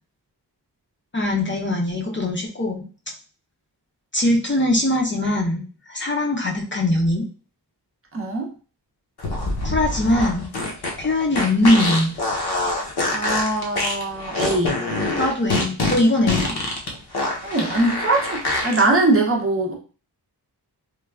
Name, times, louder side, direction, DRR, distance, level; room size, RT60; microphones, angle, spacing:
voice 1, 1.1-2.8 4.1-7.3 9.6-10.5 11.0-12.1 15.1-16.6, left 1 dB, 30° left, -1 dB, 0.5 m, -21 dB
voice 2, 8.1-8.5 13.1-14.8 17.4-19.7, right 2 dB, 35° right, 0 dB, 0.6 m, -21 dB
sound 1, 9.2-18.8, left 2 dB, 65° left, 0.7 m, -25 dB
3.2 x 2.2 x 2.2 m, 0.37 s
wide cardioid pair, 95°, 41 cm